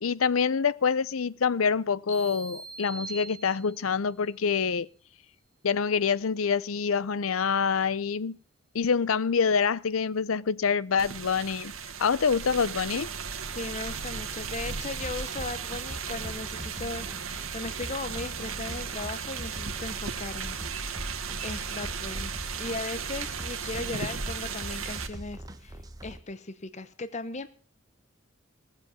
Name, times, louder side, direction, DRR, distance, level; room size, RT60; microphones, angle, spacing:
voice 1, 0.0-4.9 5.6-8.4 8.7-11.7 12.0-13.1, left 6 dB, 80° left, 0.6 m, -26 dB
sound 1, 2.1-4.0, right 3 dB, 60° left, 3.2 m, -42 dB
sound 2, 11.0-25.1, right 6 dB, 80° right, 1.7 m, -36 dB
voice 2, 13.5-20.6 21.4-27.5, left 3 dB, 35° left, 0.8 m, -37 dB
sound 3, 15.0-26.2, right 1 dB, 20° right, 1.2 m, -43 dB
18.0 x 7.6 x 7.0 m
head